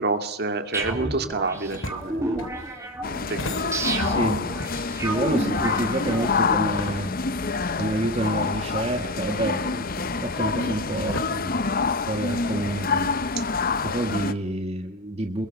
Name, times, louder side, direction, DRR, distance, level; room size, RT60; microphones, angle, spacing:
voice 1, 0.0-2.4 3.3-4.0, right 3 dB, 55° right, 7 dB, 2.2 m, -29 dB
sound 1, 0.7-6.5, right 2 dB, 15° right, 3.5 m, -31 dB
sound 2, 1.4-4.3 4.6-7.4 7.8-7.9 8.7-12.4, left 2 dB, 85° left, 2.8 m, -39 dB
sound 3, 3.0-14.3, left 4 dB, 45° left, 0.9 m, -27 dB
voice 2, 4.0-4.4 4.9-7.1 7.7-11.7 12.0-13.3 13.8-15.5, right 1 dB, 30° right, 4 dB, 1.5 m, -28 dB
27.0 x 22.0 x 6.0 m, 0.90 s
head